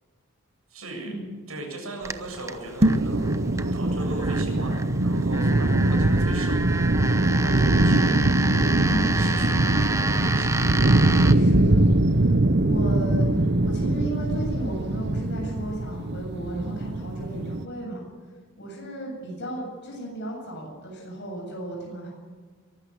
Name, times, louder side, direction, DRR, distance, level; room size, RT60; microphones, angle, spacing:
voice 1, 0.7-1.1 1.5-3.3 3.7-6.6 7.1-8.2 8.8-10.7, right 2 dB, 85° right, 1 dB, 7.9 m, -38 dB
sound 1, 2.0-11.3, right 3 dB, 15° right, 0.9 m, -31 dB
sound 2, 2.7-3.2, right 1 dB, 30° right, 1.2 m, -21 dB
sound 3, 2.8-17.6, right 2 dB, 55° right, 0.9 m, -22 dB
voice 2, 11.3-18.0 18.6-22.1, right 1 dB, 55° left, -1 dB, 7.9 m, -35 dB
23.5 x 13.0 x 9.8 m, 1.5 s
head